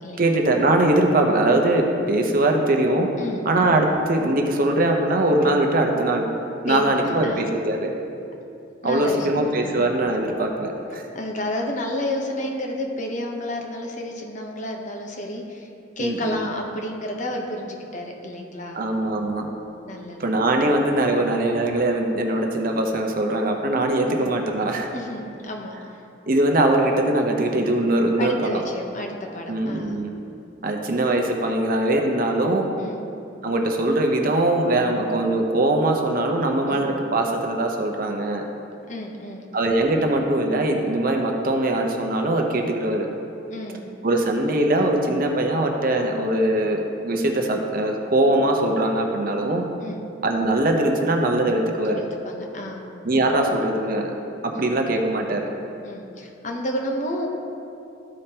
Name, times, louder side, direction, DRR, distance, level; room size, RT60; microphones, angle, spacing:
voice 1, 0.2-3.1 3.5-6.3 6.6-7.9 8.8-11.0 16.0-16.4 18.7-19.5 20.2-24.9 26.3-28.6 29.5-30.1 30.6-32.7 33.4-38.4 39.5-43.1 44.0-49.6 50.2-52.0 53.0-54.1 54.4-55.5, right 1 dB, 50° right, 2 dB, 0.8 m, -21 dB
voice 2, 6.7-7.4 8.8-9.9 11.1-15.7 16.0-18.8 19.8-20.3 21.1-21.2 24.0-24.2 24.9-26.0 28.2-30.0 32.8-33.0 36.7-36.9 38.9-39.5 43.5-43.9 49.8-50.0 51.9-52.9 54.5-54.6 55.8-57.3, left 1 dB, 40° left, 1 dB, 0.9 m, -31 dB
13.5 x 5.1 x 2.9 m, 2.7 s
head